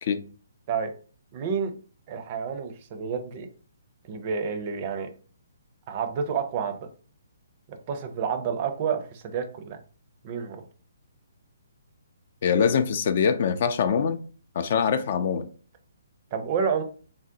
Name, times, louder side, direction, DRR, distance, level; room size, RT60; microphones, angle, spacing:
voice 1, 1.3-1.7 2.1-3.5 4.0-5.1 5.9-6.8 7.7-9.8 10.2-10.6 16.3-16.8, right 6 dB, 35° right, 0.5 m, -29 dB
voice 2, 12.4-14.2 14.6-15.5, left 6 dB, 50° left, 0.3 m, -23 dB
3.7 x 2.0 x 2.7 m
figure-of-eight pair, 130°, 0 cm